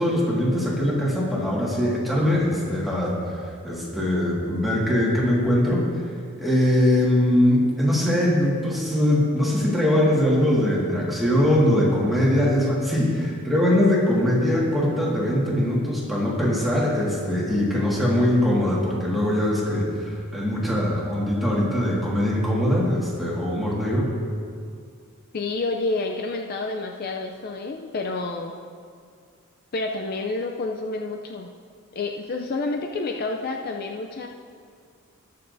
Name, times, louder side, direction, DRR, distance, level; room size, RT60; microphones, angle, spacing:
voice 1, 0.0-3.2 3.6-5.9 6.4-24.1, left 1 dB, ahead, -6 dB, 1.8 m, -22 dB
voice 2, 25.3-28.6 29.7-31.5 31.9-34.3, left 3 dB, 45° left, 2 dB, 0.4 m, -29 dB
19.5 x 6.9 x 2.6 m, 2.2 s
head